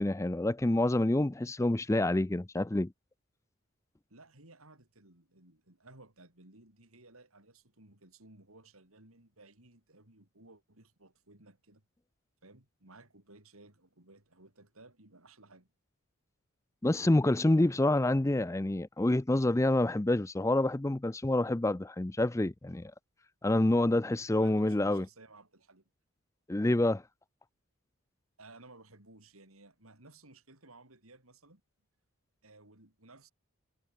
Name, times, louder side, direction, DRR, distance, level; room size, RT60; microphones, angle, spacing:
voice 1, 0.0-2.9 16.8-22.9 23.4-25.1 26.5-27.0, left 1 dB, 15° left, 0.4 m, -27 dB
voice 2, 4.1-11.8 12.4-15.7 24.3-25.9 28.4-31.6 32.4-33.3, right 2 dB, 80° right, 5.2 m, -57 dB
head